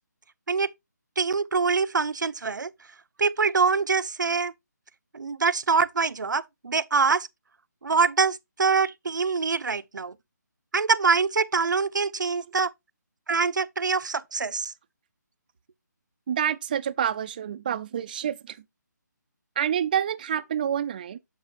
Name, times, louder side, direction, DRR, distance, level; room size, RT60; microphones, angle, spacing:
voice 1, 1.2-2.7 3.2-4.5 5.1-7.3 7.8-10.1 10.7-12.7 13.3-14.7, right 5 dB, 80° right, 0.7 m, -24 dB
voice 2, 16.3-18.6 19.6-21.2, right 9 dB, 25° right, 0.4 m, -28 dB
7.4 x 7.2 x 2.5 m
figure-of-eight pair, 160°, 10 cm